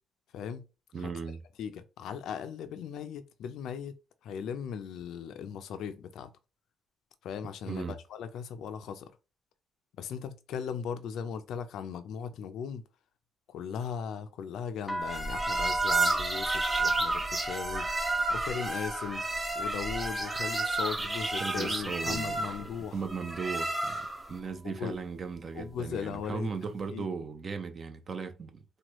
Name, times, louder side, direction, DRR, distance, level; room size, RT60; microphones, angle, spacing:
voice 1, 0.3-0.6 1.0-1.1 1.6-3.9 4.2-6.3 7.2-9.1 10.0-12.8 13.5-17.9 18.3-19.2 19.6-23.0 24.6-25.0 25.5-26.5 26.9-27.1, left 7 dB, 80° left, 0.4 m, -38 dB
voice 2, 0.9-1.4 7.7-8.0 21.0-21.1 21.4-24.0 24.3-28.6, right 5 dB, 45° right, 0.5 m, -37 dB
sound 1, 14.8-22.7 23.0-23.7 24.3-24.6 24.9-26.3, right 1 dB, 10° left, 0.4 m, -39 dB
sound 2, 15.1-24.3, right 2 dB, 20° right, 0.9 m, -31 dB
3.0 x 2.2 x 3.0 m
cardioid pair, 90°, 0 cm